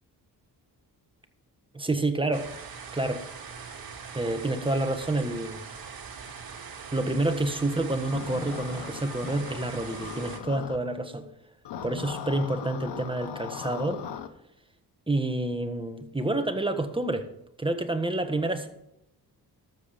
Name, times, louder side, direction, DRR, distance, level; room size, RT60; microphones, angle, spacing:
voice 1, 1.7-2.5 2.9-3.3 4.1-5.6 6.9-11.3 11.8-14.0 15.1-17.3 17.6-18.7, right 2 dB, 10° right, 1.4 m, -28 dB
sound 1, 2.3-10.4, right 6 dB, 60° right, 2.0 m, -42 dB
sound 2, 8.0-10.8 11.6-14.3, left 8 dB, 85° left, 1.0 m, -39 dB
13.0 x 7.5 x 5.2 m
cardioid pair, 80°, 41 cm